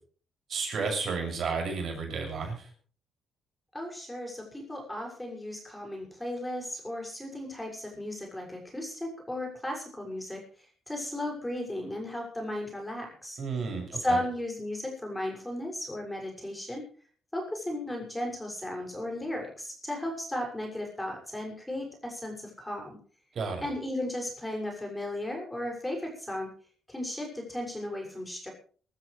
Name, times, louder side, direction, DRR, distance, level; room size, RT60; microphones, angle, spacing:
voice 1, 0.5-2.7 13.4-14.2 23.3-23.6, right 4 dB, 55° right, 2 dB, 7.2 m, -32 dB
voice 2, 3.7-13.4 13.9-16.8 17.3-23.0 23.6-26.5 26.9-28.5, left 1 dB, 10° left, 2 dB, 6.6 m, -35 dB
24.0 x 13.0 x 3.4 m, 0.43 s
cardioid pair, 90°, 0 cm